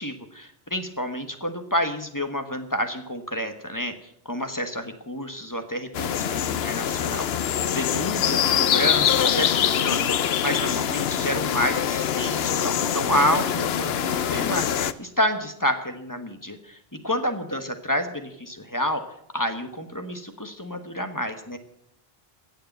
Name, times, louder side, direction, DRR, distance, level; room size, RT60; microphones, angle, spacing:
voice 1, 0.0-19.0 19.3-21.6, equal, 20° left, 6 dB, 1.3 m, -29 dB
sound 1, 5.9-14.9, left 9 dB, 75° left, 0.9 m, -24 dB
16.5 x 6.7 x 9.2 m, 0.75 s
omnidirectional pair, 1.1 m